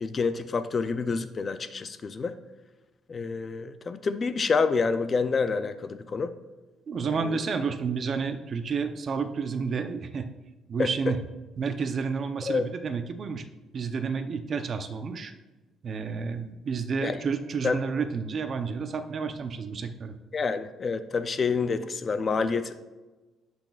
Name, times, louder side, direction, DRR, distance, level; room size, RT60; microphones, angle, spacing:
voice 1, 0.0-2.3 3.1-6.3 7.1-7.4 10.8-10.9 12.5-12.7 17.0-17.2 17.6-17.8 20.3-22.8, left 4 dB, 30° left, 10 dB, 0.4 m, -28 dB
voice 2, 6.9-10.3 10.7-11.2 11.6-13.4 13.7-15.3 15.8-20.2, right 5 dB, 35° right, 8 dB, 0.6 m, -30 dB
17.0 x 6.1 x 2.4 m, 1.2 s
cardioid pair, 160°, 0 cm